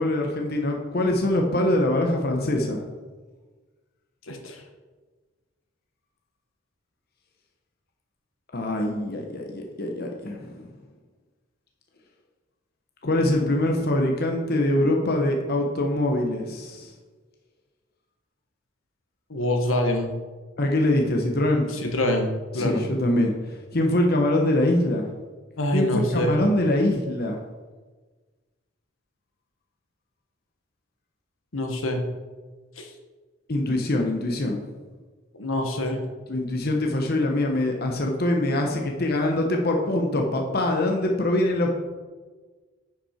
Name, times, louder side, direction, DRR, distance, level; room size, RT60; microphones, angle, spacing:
voice 1, 0.0-2.8 8.5-10.7 13.0-16.9 20.6-21.8 22.6-23.3 23.7-25.1 25.7-27.4 33.5-34.7 36.3-41.8, left 1 dB, 50° left, 2 dB, 0.9 m, -23 dB
voice 2, 4.3-4.6 19.3-20.1 21.7-22.8 25.6-26.3 31.5-32.0 32.8-32.9 35.4-36.1, left 1 dB, 85° left, 4 dB, 1.3 m, -25 dB
10.5 x 5.6 x 4.4 m, 1.3 s
head